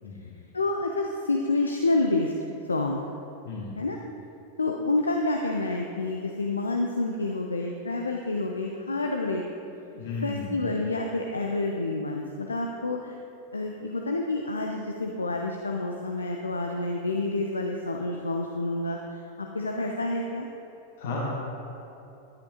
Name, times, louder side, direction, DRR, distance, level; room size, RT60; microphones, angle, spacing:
voice 1, 0.0-0.4 3.4-3.7 9.9-10.6 21.0-21.3, left 3 dB, 60° left, -3 dB, 1.5 m, -34 dB
voice 2, 0.5-2.3 2.7-3.0 3.8-4.0 4.6-9.4 10.2-13.2 13.5-19.0 19.4-20.5, left 2 dB, 75° left, 2 dB, 0.6 m, -28 dB
14.0 x 10.5 x 3.0 m, 3.0 s
figure-of-eight pair, 90°, 0 cm